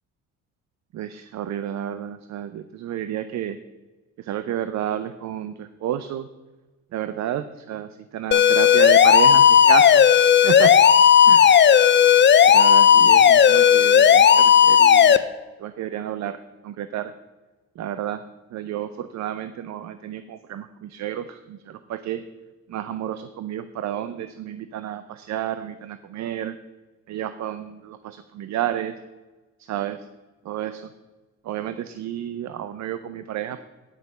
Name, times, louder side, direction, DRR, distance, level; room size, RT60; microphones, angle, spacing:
voice 1, 0.9-3.6 4.2-6.3 6.9-10.8 11.3-11.7 12.4-15.3 15.6-17.1 17.8-18.2 18.5-22.3 22.7-26.6 27.1-29.0 29.6-30.1 30.4-30.9 31.4-33.6, right 11 dB, 65° right, 12 dB, 0.6 m, -31 dB
sound 1, 8.3-15.2, left 8 dB, 35° left, 0.5 m, -13 dB
9.2 x 6.0 x 6.8 m, 1.2 s
cardioid pair, 90°, 30 cm